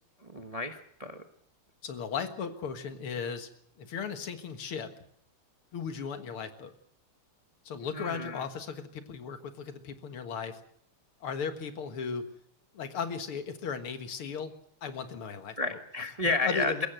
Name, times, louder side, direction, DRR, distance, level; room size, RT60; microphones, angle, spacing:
voice 1, 0.2-1.2 7.9-8.4 15.6-16.9, left 3 dB, 25° right, 6 dB, 0.9 m, -31 dB
voice 2, 1.8-3.5 3.8-4.9 5.7-6.7 7.7-10.6 11.2-12.3 12.7-14.5 14.8-15.8 16.2-16.9, left 6 dB, 75° left, 8 dB, 2.5 m, -36 dB
22.0 x 16.5 x 7.9 m, 0.67 s
omnidirectional pair, 2.4 m